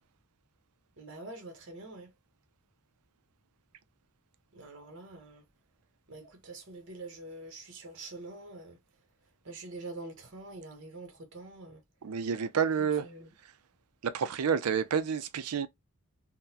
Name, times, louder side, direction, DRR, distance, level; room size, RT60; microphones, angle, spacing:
voice 1, 1.0-2.1 4.5-5.4 6.1-8.8 9.4-11.8 12.8-13.3, right 2 dB, 55° right, 1.0 m, -45 dB
voice 2, 12.0-13.1 14.0-15.7, right 7 dB, 90° right, 0.5 m, -29 dB
3.8 x 2.2 x 2.7 m
head